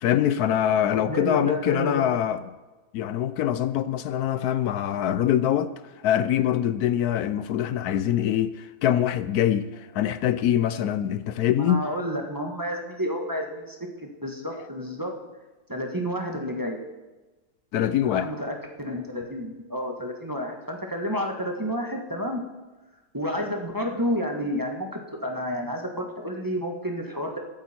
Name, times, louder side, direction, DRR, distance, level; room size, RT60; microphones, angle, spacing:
voice 1, 0.0-2.4 2.9-5.7 6.0-11.8 17.7-18.3, left 10 dB, 75° left, 1.1 m, -24 dB
voice 2, 0.9-2.1 11.6-15.1 15.7-16.8 18.1-22.4 23.1-27.4, equal, 15° right, 1.4 m, -30 dB
22.5 x 8.8 x 4.4 m
omnidirectional pair, 1.7 m